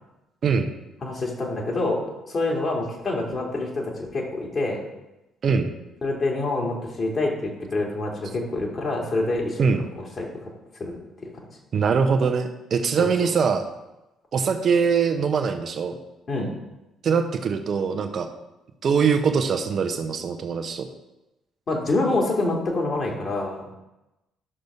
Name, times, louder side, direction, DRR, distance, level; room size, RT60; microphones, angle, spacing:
voice 1, 1.0-2.0 2.3-4.8 6.0-9.6 10.0-10.3 10.8-11.0 13.0-13.1 16.3-16.5 21.7-23.6, left 2 dB, 40° left, -1 dB, 2.3 m, -26 dB
voice 2, 11.7-13.6 14.3-15.9 17.0-18.3 18.8-20.9, right 6 dB, 45° right, 7 dB, 1.0 m, -22 dB
11.0 x 6.5 x 3.5 m, 0.96 s
figure-of-eight pair, 45°, 0 cm